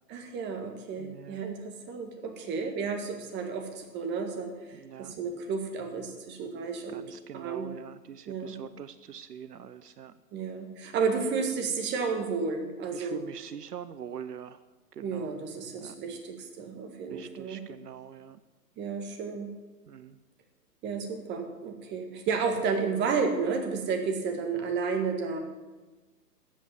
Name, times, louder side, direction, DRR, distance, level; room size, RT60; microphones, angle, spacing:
voice 1, 0.1-7.0 7.3-7.7 8.3-8.6 10.3-13.2 15.0-17.6 18.8-19.5 20.8-25.4, right 5 dB, 20° right, 5 dB, 1.8 m, -32 dB
voice 2, 1.0-1.4 4.7-5.2 6.9-10.1 12.9-14.6 14.9-15.3 15.8-16.0 17.1-18.4 19.9-20.2, right 8 dB, 75° right, 14 dB, 0.7 m, -44 dB
13.5 x 8.5 x 7.2 m, 1.2 s
figure-of-eight pair, 120°, 48 cm